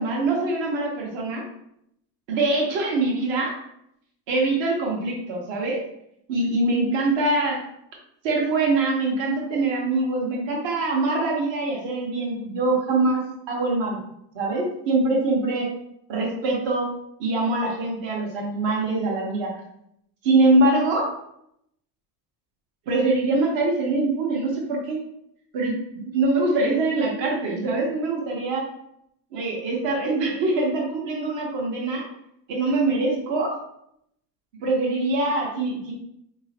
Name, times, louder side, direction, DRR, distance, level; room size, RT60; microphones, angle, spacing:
voice 1, 0.0-1.4 2.3-3.5 4.3-5.8 6.3-7.6 8.2-14.0 14.3-15.7 16.1-16.9 17.2-19.5 20.2-21.1 22.9-25.0 25.5-28.7 29.3-32.0 32.5-33.5 34.6-35.9, right 2 dB, 65° right, -1 dB, 1.2 m, -23 dB
4.0 x 3.0 x 2.9 m, 0.76 s
cardioid pair, 120°, 48 cm